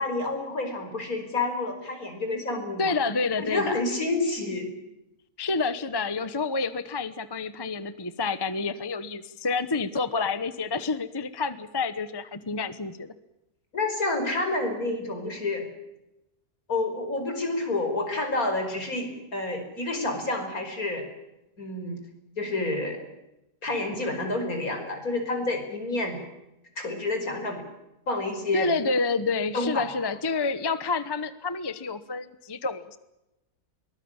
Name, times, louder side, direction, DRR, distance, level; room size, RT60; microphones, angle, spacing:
voice 1, 0.0-2.9 3.4-4.7 13.7-15.6 16.7-21.0 21.6-22.0 22.4-23.1 23.6-26.2 26.8-27.6 28.1-28.7 29.5-29.8, left 2 dB, 70° left, 5 dB, 5.5 m, -29 dB
voice 2, 2.8-3.8 5.4-13.1 28.5-33.0, left 4 dB, 20° left, 13 dB, 0.9 m, -28 dB
23.0 x 19.5 x 8.9 m, 0.93 s
omnidirectional pair, 1.6 m